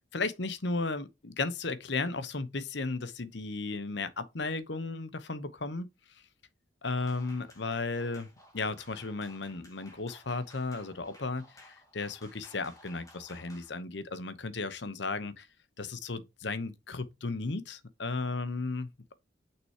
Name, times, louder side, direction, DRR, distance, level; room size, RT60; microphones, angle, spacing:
voice 1, 0.1-5.9 6.8-8.3 8.5-15.5 15.8-19.1, left 3 dB, 60° left, 0.9 m, -35 dB
sound 1, 6.9-13.7, left 1 dB, 20° left, 2.2 m, -56 dB
6.4 x 5.9 x 2.9 m
head